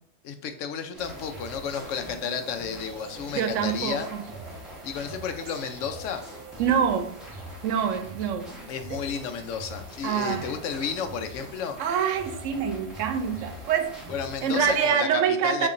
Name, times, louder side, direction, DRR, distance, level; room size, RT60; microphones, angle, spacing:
voice 1, 0.2-4.1 4.8-6.2 8.7-11.8 14.1-15.7, left 7 dB, 85° left, 8 dB, 1.0 m, -32 dB
sound 1, 0.9-14.8, equal, ahead, 1.1 m, -44 dB
sound 2, 1.0-14.9, right 3 dB, 65° right, 1.2 m, -46 dB
voice 2, 3.3-4.3 6.6-7.2 7.6-8.5 8.9-9.0 10.0-10.5 11.8-14.0 14.4-15.7, right 7 dB, 85° right, 8 dB, 0.9 m, -26 dB
6.6 x 2.8 x 2.5 m, 0.64 s
omnidirectional pair, 1.2 m